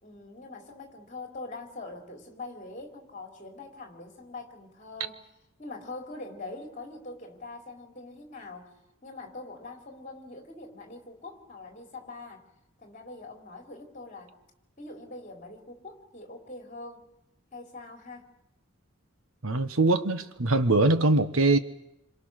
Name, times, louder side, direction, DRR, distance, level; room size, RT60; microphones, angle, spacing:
voice 1, 0.0-5.2 5.6-8.7 9.0-12.4 12.8-14.3 14.8-17.1 17.5-18.3, left 2 dB, 35° left, 4.0 m, -43 dB
voice 2, 19.4-21.6, right 2 dB, 85° right, 1.4 m, -22 dB
27.5 x 26.5 x 6.6 m
head